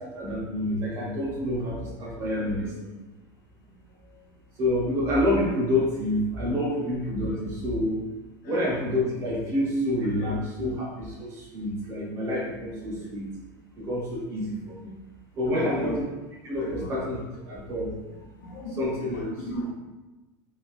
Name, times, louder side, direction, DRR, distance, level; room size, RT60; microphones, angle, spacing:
voice 1, 0.0-2.9 4.6-8.0 8.4-13.3 13.8-14.9 15.3-16.0 16.4-17.2 17.5-17.9 18.7-19.3, left 1 dB, 25° right, -4 dB, 0.7 m, -28 dB
voice 2, 2.3-2.7 3.9-4.2 6.8-6.9 7.3-7.4 8.4-8.6 10.2-10.8 13.0-13.1 15.5-16.0 16.6-16.9 18.4-19.7, left 1 dB, 60° left, -2 dB, 0.6 m, -37 dB
3.0 x 2.7 x 2.4 m, 1.1 s
supercardioid pair, 175°, 11 cm